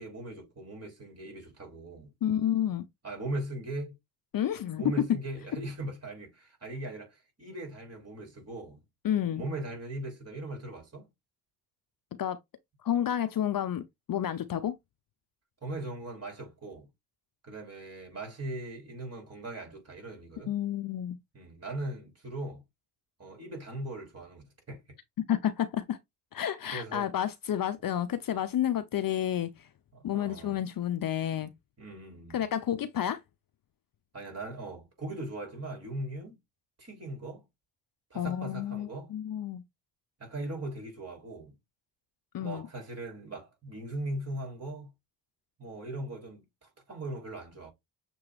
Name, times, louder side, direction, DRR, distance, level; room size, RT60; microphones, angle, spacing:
voice 1, 0.0-2.1 3.0-4.0 4.8-8.8 9.3-11.1 15.6-16.9 17.4-20.5 21.3-22.6 23.2-24.8 26.7-27.1 29.9-30.6 31.8-32.5 34.1-36.4 36.8-37.4 38.1-39.1 40.2-41.6 42.4-44.9 45.6-47.7, right 1 dB, 30° right, 3.6 m, -39 dB
voice 2, 2.2-2.9 4.3-5.0 9.0-9.4 12.2-12.4 12.8-14.8 20.5-21.2 25.3-26.0 26.3-29.7 30.0-31.5 32.3-33.2 38.1-39.6 42.3-42.7, left 10 dB, 45° left, 0.7 m, -30 dB
6.8 x 3.1 x 2.4 m
supercardioid pair, 60°, 47 cm